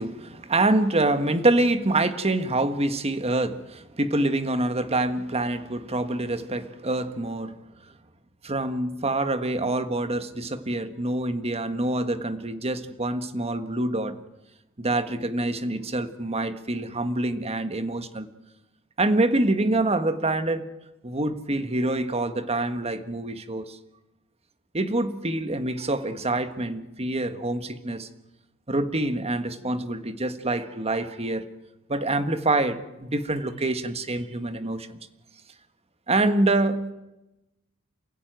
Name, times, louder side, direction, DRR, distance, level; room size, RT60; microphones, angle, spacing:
voice 1, 0.0-7.6 8.4-14.2 14.8-18.3 19.0-20.6 21.0-23.8 24.7-28.1 28.7-31.5 31.9-35.0 36.1-36.9, right 2 dB, 30° right, 1.5 m, -26 dB
28.5 x 15.5 x 9.2 m
head